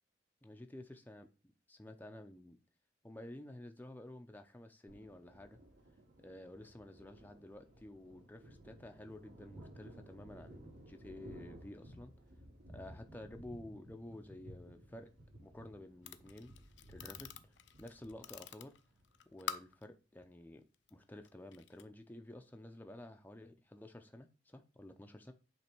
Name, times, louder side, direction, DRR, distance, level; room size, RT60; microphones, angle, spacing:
voice 1, 0.4-2.6 3.0-5.6 6.2-12.1 12.7-15.1 15.4-16.5 16.9-17.3 17.8-18.7 19.3-20.6 20.9-25.3, left 1 dB, 10° left, 0.5 m, -52 dB
Thunder, 4.9-19.7, right 1 dB, 75° right, 3.8 m, -56 dB
sound 1, 16.0-19.9 20.7-20.9 21.2-21.9, left 7 dB, 65° left, 0.5 m, -47 dB
8.3 x 3.3 x 4.5 m
head